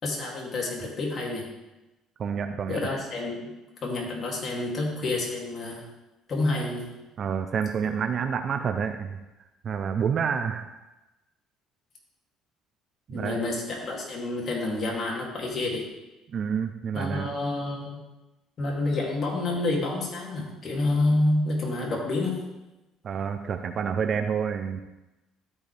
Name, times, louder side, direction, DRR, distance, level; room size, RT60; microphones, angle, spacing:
voice 1, 0.0-1.5 2.7-3.4 3.8-5.9 6.3-6.9 7.8-7.9 13.1-15.8 16.9-18.0 18.6-22.4, left 2 dB, 45° left, -3 dB, 2.7 m, -28 dB
voice 2, 2.2-2.8 7.2-9.2 9.6-10.7 13.1-13.4 16.3-17.3 23.0-24.8, right 7 dB, 50° right, 7 dB, 0.6 m, -28 dB
13.0 x 4.7 x 3.4 m, 1.0 s
supercardioid pair, 70°, 0 cm